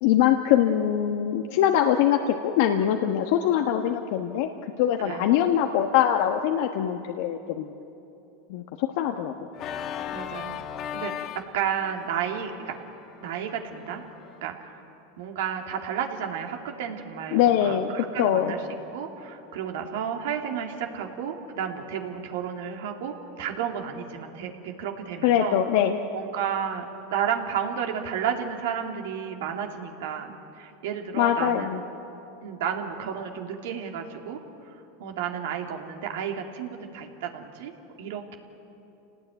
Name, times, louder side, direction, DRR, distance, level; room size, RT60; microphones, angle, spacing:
voice 1, 0.0-4.5 4.8-7.7 8.5-9.3 17.3-17.9 18.2-18.5 25.2-26.0 31.2-31.8, left 10 dB, 65° left, 5 dB, 1.3 m, -23 dB
Organ, 9.5-14.4, left 9 dB, 45° left, 1.5 m, -38 dB
voice 2, 10.1-10.6 10.9-11.2 11.5-12.7 13.2-14.0 14.4-14.7 15.2-18.6 18.9-25.6 26.1-26.8 27.1-31.7 32.4-34.4 35.0-37.7 38.0-38.4, right 8 dB, 75° right, 3 dB, 2.8 m, -32 dB
28.0 x 18.5 x 9.3 m, 2.9 s
hypercardioid pair, 110°, 0 cm